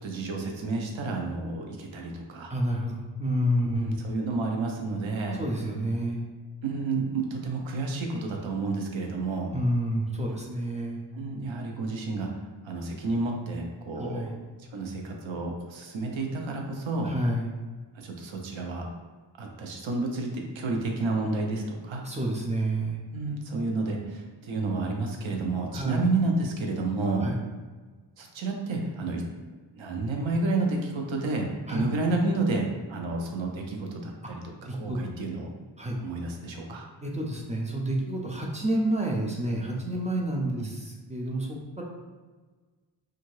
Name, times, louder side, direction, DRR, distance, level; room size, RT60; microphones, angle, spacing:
voice 1, 0.0-2.5 3.8-5.4 6.6-9.5 11.1-12.3 12.6-14.3 14.7-17.1 17.9-18.8 19.4-22.0 23.1-27.3 28.2-29.2 29.7-35.5 36.0-36.8 40.6-40.7, right 3 dB, 85° right, 1 dB, 0.6 m, -30 dB
voice 2, 2.5-3.9 5.3-6.2 9.5-11.0 14.0-14.3 17.0-17.5 22.0-23.0 25.7-26.0 27.1-27.4 31.7-31.8 34.6-35.0 35.8-36.0 37.0-41.8, right 1 dB, 20° right, -2 dB, 0.3 m, -29 dB
2.6 x 2.4 x 3.0 m, 1.4 s
wide cardioid pair, 150°, 45 cm